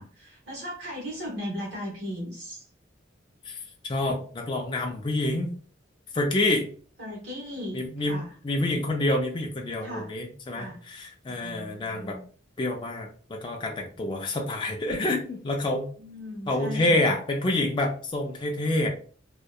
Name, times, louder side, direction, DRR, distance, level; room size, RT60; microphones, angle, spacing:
voice 1, 0.0-2.6 7.0-8.3 9.8-10.1 10.5-10.8 11.3-12.2 16.0-17.2, equal, 70° right, -4 dB, 1.1 m, -37 dB
voice 2, 3.8-5.5 6.1-6.7 7.7-12.2 12.6-15.9 16.5-18.9, left 1 dB, 25° left, 1 dB, 0.4 m, -27 dB
2.7 x 2.1 x 2.2 m, 0.42 s
head